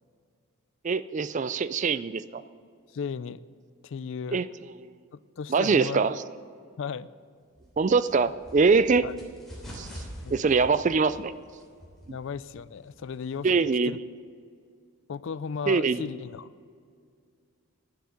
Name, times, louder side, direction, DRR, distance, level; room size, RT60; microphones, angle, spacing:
voice 1, 0.8-2.4 4.3-4.5 5.5-6.2 7.8-9.1 9.7-9.9 10.3-11.3 12.1-12.2 13.4-14.0 15.7-16.0, right 4 dB, 35° right, 15 dB, 0.3 m, -23 dB
voice 2, 2.9-3.4 3.8-4.4 5.1-6.1 6.8-7.1 9.0-9.1 10.2-10.7 12.1-13.5 13.8-14.0 15.1-16.5, left 6 dB, 60° left, 17 dB, 0.4 m, -35 dB
sound 1, 7.5-13.7, equal, ahead, 3.1 m, -46 dB
11.5 x 9.7 x 6.4 m, 2.2 s
head